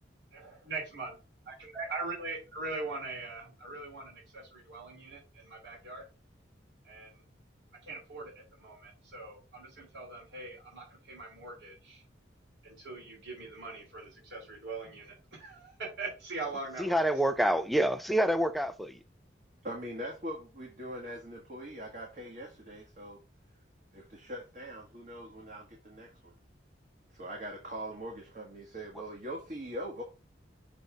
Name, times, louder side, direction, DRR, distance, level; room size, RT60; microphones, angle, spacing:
voice 1, 0.3-1.1 1.5-6.0 6.8-7.2 7.8-12.0 12.6-17.0, right 3 dB, 80° right, 3.0 m, -41 dB
voice 2, 16.8-19.0, right 1 dB, ahead, 0.3 m, -27 dB
voice 3, 19.6-23.2 23.9-26.3 27.1-30.0, equal, 45° right, 1.4 m, -42 dB
6.7 x 3.4 x 5.0 m
head